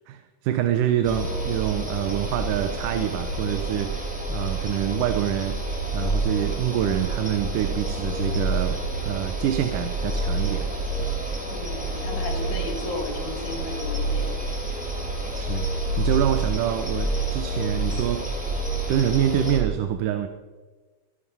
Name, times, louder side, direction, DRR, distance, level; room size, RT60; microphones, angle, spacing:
voice 1, 0.1-11.2 15.3-18.5 18.9-20.3, right 11 dB, 85° right, 9 dB, 2.4 m, -26 dB
sound 1, 1.0-19.6, right 2 dB, 5° right, 2.7 m, -28 dB
voice 2, 11.5-14.3, left 3 dB, 70° left, 3 dB, 3.3 m, -34 dB
24.0 x 10.0 x 5.5 m, 1.3 s
omnidirectional pair, 3.6 m